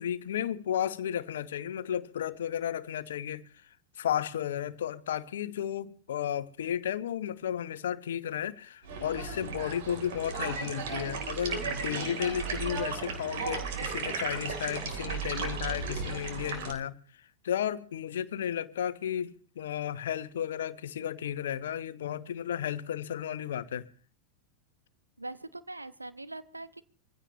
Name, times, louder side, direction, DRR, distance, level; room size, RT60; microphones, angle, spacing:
voice 1, 0.0-3.4 4.0-17.0 17.4-23.9, left 10 dB, 60° left, 1.0 m, -33 dB
sound 1, 8.8-16.7, right 5 dB, 55° right, 3.5 m, -35 dB
voice 2, 25.2-26.8, right 2 dB, 80° right, 1.1 m, -42 dB
25.0 x 16.0 x 3.1 m
figure-of-eight pair, 90°, 0 cm